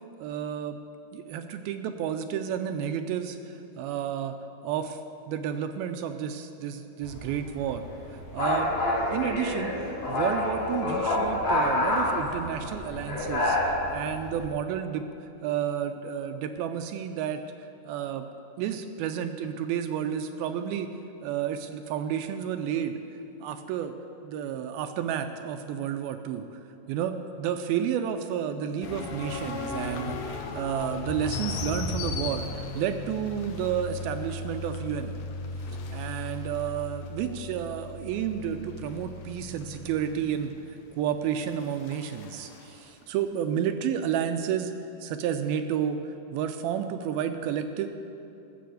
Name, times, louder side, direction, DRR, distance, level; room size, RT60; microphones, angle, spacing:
voice 1, 0.2-0.8 1.1-4.4 4.6-5.0 5.3-7.8 8.1-8.8 9.1-9.8 10.1-13.6 13.9-17.4 17.9-18.3 18.6-20.9 21.2-23.0 23.4-23.9 24.2-26.6 26.9-32.4 32.7-35.2 35.9-40.5 40.9-44.7 45.0-47.9, right 9 dB, 80° right, 7 dB, 2.3 m, -31 dB
sound 1, 7.0-14.5, left 1 dB, 45° left, 4.0 m, -28 dB
sound 2, 28.8-42.7, left 3 dB, 75° left, 2.6 m, -37 dB
15.0 x 6.8 x 7.8 m, 2.7 s
omnidirectional pair, 4.6 m